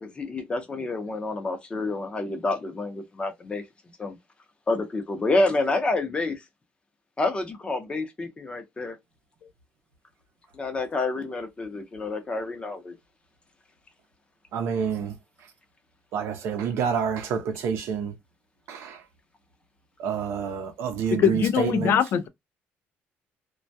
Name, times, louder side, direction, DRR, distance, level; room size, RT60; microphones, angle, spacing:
voice 1, 0.0-3.6 4.0-4.2 4.7-6.4 7.2-9.0 10.5-12.9, left 2 dB, 25° left, 0.6 m, -28 dB
voice 2, 14.5-15.1 16.1-18.1 18.7-19.0 20.0-21.9, right 7 dB, 75° right, 0.6 m, -28 dB
voice 3, 21.1-22.3, left 8 dB, 55° left, 0.3 m, -22 dB
2.2 x 2.1 x 2.6 m
cardioid pair, 125°, 5 cm